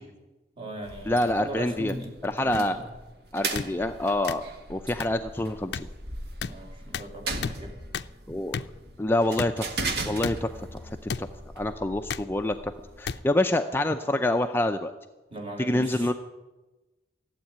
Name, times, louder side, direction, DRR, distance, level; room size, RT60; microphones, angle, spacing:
voice 1, 0.5-2.9 6.4-7.8 15.3-16.1, right 1 dB, 30° right, 1 dB, 2.9 m, -39 dB
sound 1, 0.8-13.2, right 3 dB, 60° right, 1.8 m, -38 dB
voice 2, 1.1-1.9 2.2-2.8 3.3-4.4 4.7-5.9 8.3-8.6 9.0-9.8 10.1-11.3 11.6-12.7 13.0-14.9 15.6-16.1, left 1 dB, 10° left, 6 dB, 0.5 m, -26 dB
sound 2, 2.5-2.6 3.5-3.7 4.3-4.4 5.0-5.1 5.7-5.8 6.4-6.5 6.9-7.1 7.4-7.5 7.9-8.1 8.5-8.7 9.4-9.5 10.2-10.3 11.1-11.2 12.1-12.3 13.0-13.2 14.0-14.2, left 6 dB, 65° left, 0.5 m, -31 dB
15.0 x 8.2 x 10.0 m, 1.1 s
head